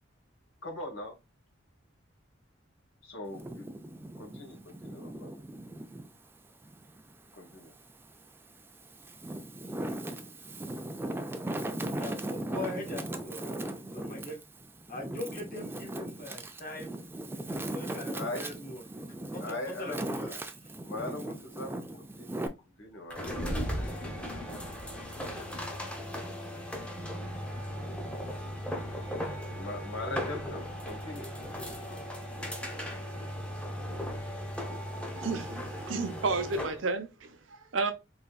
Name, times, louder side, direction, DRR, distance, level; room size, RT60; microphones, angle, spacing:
voice 1, 0.6-1.1 3.0-3.7 4.2-5.3 7.4-7.7 18.1-18.5 19.4-20.3 20.8-22.5 22.8-23.5 29.5-32.0, left 2 dB, 85° left, 1.8 m, -41 dB
Wind, 3.3-6.1 6.6-7.9 8.5-22.5, right 1 dB, 10° right, 0.4 m, -38 dB
voice 2, 12.0-14.4 14.9-16.9 17.7-18.8 19.3-20.4, left 2 dB, 45° left, 1.7 m, -41 dB
sound 1, 23.1-36.8, equal, 5° left, 0.8 m, -37 dB
voice 3, 35.2-37.9, right 3 dB, 70° right, 0.7 m, -32 dB
4.0 x 3.3 x 2.3 m
head